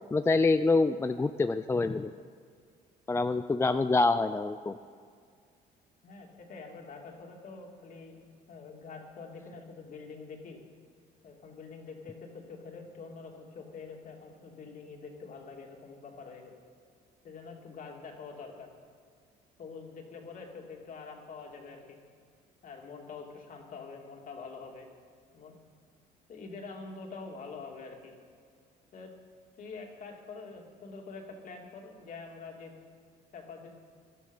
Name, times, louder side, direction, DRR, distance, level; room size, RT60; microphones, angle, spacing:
voice 1, 0.1-2.1 3.1-4.8, left 3 dB, 15° left, 10 dB, 0.4 m, -26 dB
voice 2, 6.0-8.2 8.5-10.6 11.2-16.5 17.2-18.7 19.6-22.0 22.6-24.9 25.3-25.5 26.3-28.2 28.9-29.1 29.6-32.7 33.3-33.7, left 4 dB, 50° left, 1 dB, 2.9 m, -45 dB
19.5 x 12.5 x 5.6 m, 2.1 s
cardioid pair, 110°, 17 cm